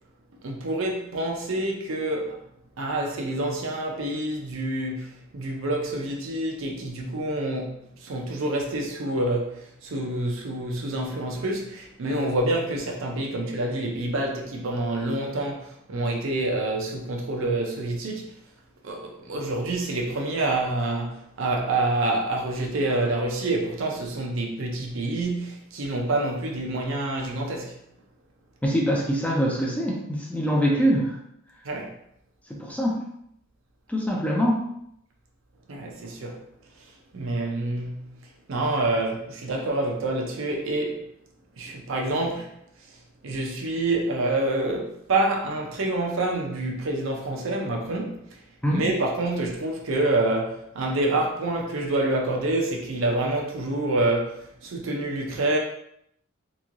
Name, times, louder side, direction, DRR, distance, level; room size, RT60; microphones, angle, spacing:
voice 1, 0.4-2.4 2.8-18.3 18.8-27.7 31.6-31.9 35.7-36.4 37.1-38.1 38.5-41.0 41.6-42.5 43.2-48.2 48.7-55.6, right 2 dB, 65° right, 0.6 m, -27 dB
voice 2, 28.6-31.2 32.5-33.0 33.9-34.6 48.6-48.9, equal, 5° left, 0.5 m, -24 dB
3.0 x 2.7 x 2.5 m
head